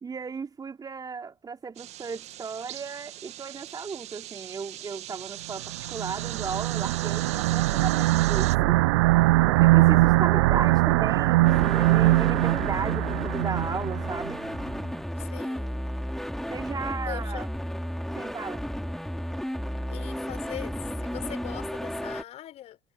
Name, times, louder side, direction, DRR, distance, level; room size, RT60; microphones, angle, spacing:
voice 1, 0.0-8.8 9.5-14.4 16.5-17.5 18.2-18.6, right 5 dB, 25° right, 3.4 m, -35 dB
sound 1, 1.8-8.6, right 14 dB, 50° right, 2.5 m, -40 dB
sound 2, 5.7-14.4, right 20 dB, 70° right, 0.7 m, -22 dB
sound 3, 11.4-22.2, equal, ahead, 6.1 m, -33 dB
voice 2, 15.2-15.8 17.1-17.5 19.9-22.8, left 12 dB, 50° left, 6.3 m, -41 dB
figure-of-eight pair, 60°, 14 cm